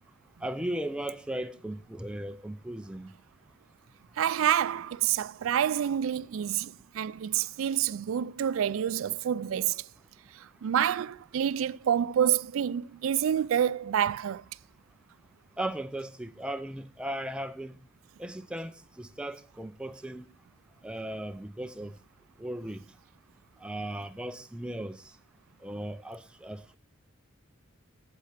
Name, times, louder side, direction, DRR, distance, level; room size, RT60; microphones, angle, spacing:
voice 1, 0.4-3.1 15.6-17.7 18.2-20.3 20.8-22.0 22.4-22.8 23.6-25.1 25.6-26.8, right 1 dB, 5° right, 0.4 m, -37 dB
voice 2, 4.2-9.9 10.3-14.4, right 9 dB, 85° right, 0.4 m, -28 dB
8.5 x 7.5 x 5.7 m
head